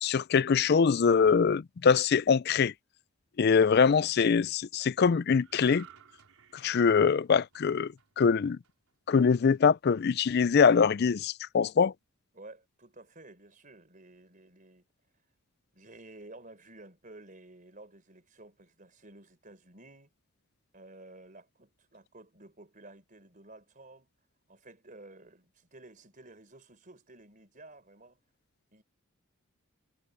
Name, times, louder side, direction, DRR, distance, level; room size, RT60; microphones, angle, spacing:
voice 1, 0.0-2.7 3.4-5.9 6.5-8.6 9.1-11.9, left 6 dB, 45° left, 0.4 m, -23 dB
sound 1, 5.4-8.9 9.3-9.6, right 8 dB, 80° right, 4.2 m, -55 dB
voice 2, 12.3-14.9 15.7-20.1 20.7-24.1 24.5-28.2 28.7-28.8, right 2 dB, 35° right, 4.2 m, -52 dB
head